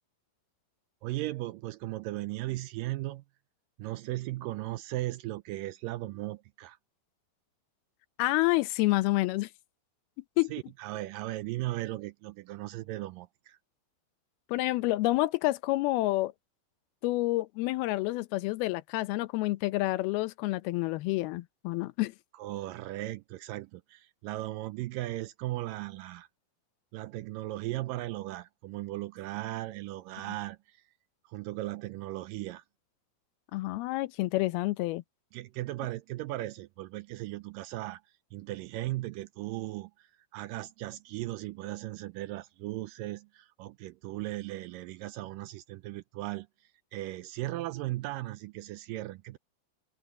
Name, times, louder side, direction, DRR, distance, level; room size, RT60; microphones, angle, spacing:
voice 1, 1.0-3.2 3.8-6.8 10.5-13.6 22.3-26.3 26.9-30.8 31.3-32.6 35.3-38.0 38.3-46.5 46.9-49.4, right 17 dB, 80° right, 2.0 m, -37 dB
voice 2, 8.2-9.5 10.4-10.5 14.5-16.3 17.0-22.1 33.5-35.0, left 19 dB, 90° left, 2.7 m, -28 dB
omnidirectional pair, 4.3 m